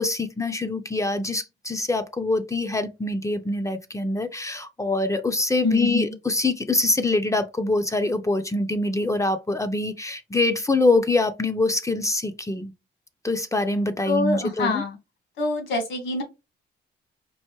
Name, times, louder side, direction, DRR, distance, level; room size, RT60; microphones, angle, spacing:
voice 1, 0.0-12.7 13.2-14.8, left 2 dB, 15° left, 0.5 m, -24 dB
voice 2, 5.6-6.1 14.0-15.0 15.4-16.2, left 2 dB, 70° left, 1.6 m, -25 dB
4.6 x 2.5 x 2.9 m
cardioid pair, 90°, 20 cm